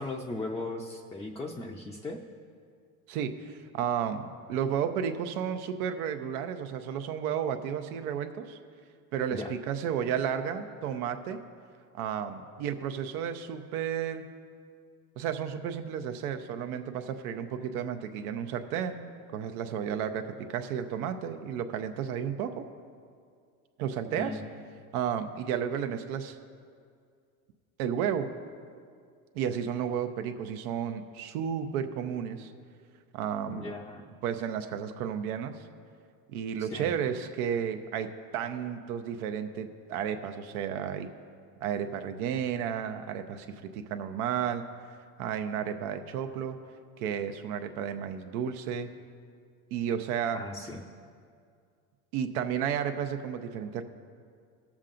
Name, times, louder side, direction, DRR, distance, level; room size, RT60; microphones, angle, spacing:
voice 1, 0.0-2.2 9.3-9.5 24.1-24.4 33.5-34.1 36.6-36.9 50.3-50.8, left 2 dB, 10° left, -1 dB, 0.5 m, -37 dB
voice 2, 3.1-8.6 9.1-11.4 12.0-14.3 15.2-19.0 19.3-22.7 23.8-24.4 24.9-26.4 27.8-28.3 29.3-32.5 33.1-33.7 34.2-35.6 36.3-38.1 38.3-41.1 41.6-43.5 43.7-44.6 45.2-46.6 47.0-48.9 49.7-50.4 52.1-53.8, right 8 dB, 80° right, 7 dB, 0.9 m, -32 dB
21.0 x 7.3 x 2.5 m, 2.2 s
supercardioid pair, 110°, 43 cm